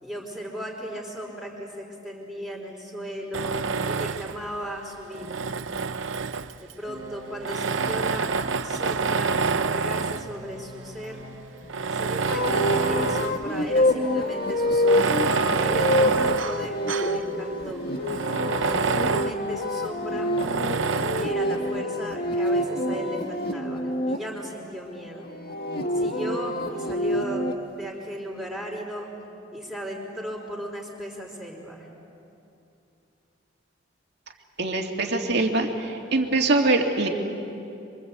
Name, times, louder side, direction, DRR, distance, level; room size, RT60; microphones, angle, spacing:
voice 1, 0.0-3.6 3.8-5.5 6.6-8.3 8.6-9.4 9.7-11.2 11.9-17.9 18.8-20.3 21.1-25.3 25.9-27.5 27.7-29.1 29.5-31.9, equal, ahead, -3 dB, 3.9 m, -36 dB
Tools, 3.3-4.5 5.1-6.7 7.4-10.3 11.0-11.1 11.7-13.4 13.8-13.9 14.8-17.2 17.6-17.7 18.0-19.4 20.4-21.4, right 5 dB, 75° right, 0.7 m, -27 dB
sound 1, 6.9-11.9, equal, 30° right, 1.5 m, -45 dB
sound 2, 12.2-24.2 25.3-27.5, left 1 dB, 50° left, 1.7 m, -26 dB
voice 2, 34.6-37.1, right 2 dB, 55° right, 2 dB, 2.4 m, -23 dB
26.0 x 25.0 x 8.2 m, 2.7 s
head